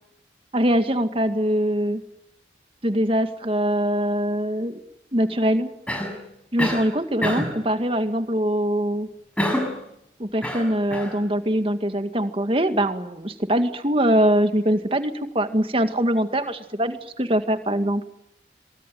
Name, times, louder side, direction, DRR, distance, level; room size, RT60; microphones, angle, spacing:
voice 1, 0.5-2.0 2.8-4.8 5.1-5.7 6.5-9.1 10.2-18.0, right 1 dB, 30° right, 8 dB, 2.0 m, -23 dB
Cough, 5.9-6.2 6.6-6.9 7.2-7.6 9.4-9.8 10.4-11.2, left 1 dB, 5° left, 6.2 m, -26 dB
24.0 x 23.5 x 9.2 m, 0.77 s
head